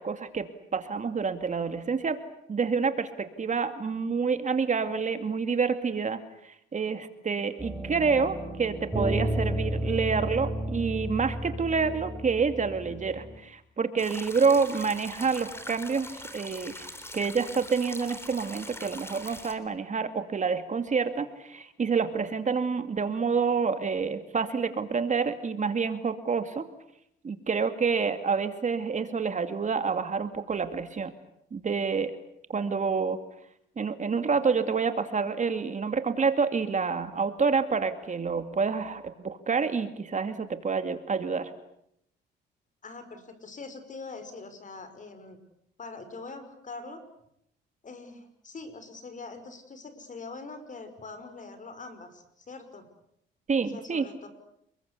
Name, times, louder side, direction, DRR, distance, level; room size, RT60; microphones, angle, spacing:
voice 1, 0.0-2.2 2.5-16.9 17.1-26.6 27.2-31.1 31.5-32.1 32.5-33.2 33.8-41.5 53.5-54.1, right 5 dB, 40° right, 9 dB, 2.4 m, -28 dB
sound 1, 7.6-13.4, right 1 dB, 5° right, 6.5 m, -32 dB
sound 2, 14.0-19.5, left 1 dB, 10° left, 4.0 m, -42 dB
voice 2, 42.8-45.4 45.8-47.0 47.8-52.8 53.7-54.3, left 3 dB, 40° left, 10 dB, 5.7 m, -43 dB
29.5 x 21.5 x 8.4 m, 0.75 s
cardioid pair, 90°, 20 cm